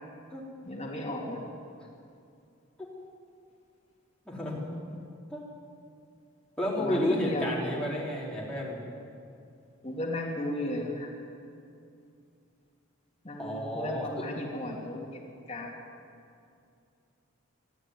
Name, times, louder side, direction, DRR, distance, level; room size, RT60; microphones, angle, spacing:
voice 1, 0.6-1.4 4.9-5.0 6.8-7.8 9.8-11.1 13.2-15.8, left 1 dB, 30° left, -4 dB, 2.5 m, -35 dB
voice 2, 4.2-4.6 5.3-5.4 6.6-8.8 13.4-14.3, left 1 dB, 5° left, -5 dB, 4.5 m, -31 dB
24.0 x 13.5 x 9.7 m, 2.5 s
head